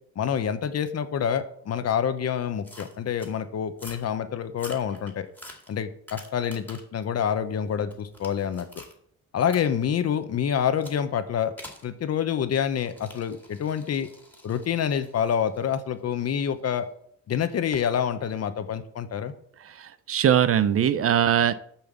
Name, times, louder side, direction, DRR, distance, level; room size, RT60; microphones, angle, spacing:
voice 1, 0.2-5.3 5.7-8.7 9.3-11.5 11.8-14.1 14.4-16.8 17.3-19.3, left 8 dB, 55° left, 11 dB, 1.0 m, -27 dB
sound 1, 2.6-3.3 3.7-4.1 4.5-7.0 7.4-9.0 9.5-9.6 10.8-11.0 11.6-11.9 12.8-16.7 17.7-17.9, left 1 dB, 5° left, 2.2 m, -47 dB
voice 2, 19.6-21.5, right 9 dB, 50° right, 14 dB, 0.6 m, -21 dB
7.2 x 5.7 x 6.8 m, 0.66 s
cardioid pair, 90°, 30 cm